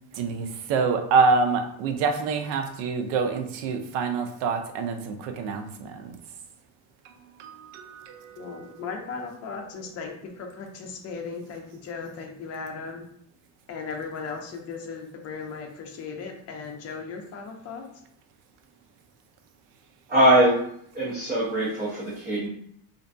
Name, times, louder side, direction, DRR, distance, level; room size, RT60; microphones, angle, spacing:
voice 1, 0.1-6.2 7.4-8.8, right 4 dB, 80° right, 6 dB, 0.5 m, -26 dB
voice 2, 8.4-13.0 13.7-17.9, left 5 dB, 40° left, 3 dB, 0.5 m, -37 dB
voice 3, 20.1-20.6 20.9-22.5, right 1 dB, 20° right, -8 dB, 0.7 m, -21 dB
2.6 x 2.1 x 2.5 m, 0.70 s
cardioid pair, 130°, 43 cm